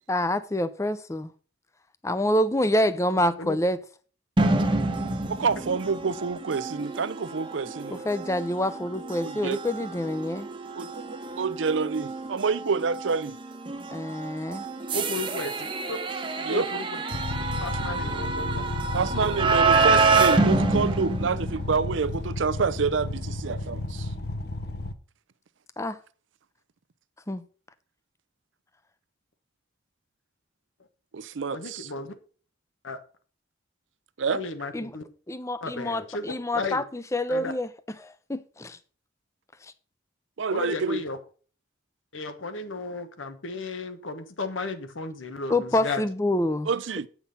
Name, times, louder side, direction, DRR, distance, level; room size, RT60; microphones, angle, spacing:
voice 1, 0.1-1.3 2.0-3.8 8.1-10.5 13.9-14.7 25.8-26.0 27.3-27.4 34.7-34.9 35.3-37.7 38.0-38.8 45.5-46.7, left 1 dB, 15° left, 0.5 m, -27 dB
sound 1, 4.4-22.1, right 3 dB, 25° right, 0.9 m, -27 dB
voice 2, 5.3-8.0 9.2-9.6 10.8-11.0 11.4-13.4 16.4-16.7 18.9-24.1 31.1-31.9 34.2-34.4 40.4-41.0 46.7-47.3, right 5 dB, 75° right, 0.6 m, -28 dB
voice 3, 14.9-16.0 16.4-17.0 17.6-18.6 31.5-32.1 32.8-33.0 34.3-35.1 35.6-36.8 37.3-37.5 40.5-41.2 42.1-46.0, left 3 dB, 90° left, 1.2 m, -34 dB
sound 2, 17.1-24.9, left 2 dB, 55° left, 0.7 m, -32 dB
8.6 x 5.9 x 5.5 m
head